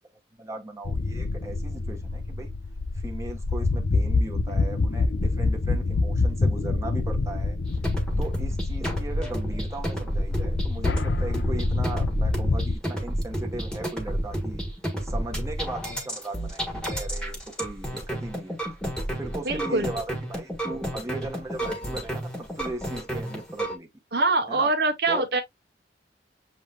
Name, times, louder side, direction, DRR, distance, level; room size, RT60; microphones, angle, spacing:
voice 1, 0.4-2.5 2.9-7.6 8.2-14.6 15.0-18.6 19.1-23.9 24.5-24.7 25.1-25.2, right 2 dB, 15° right, 1.1 m, -37 dB
sound 1, 0.8-12.8, left 3 dB, 75° left, 0.6 m, -26 dB
sound 2, 7.7-23.8, right 1 dB, 5° left, 1.4 m, -31 dB
voice 2, 19.4-19.9 24.1-25.4, right 3 dB, 60° right, 1.0 m, -24 dB
7.2 x 3.2 x 2.3 m
head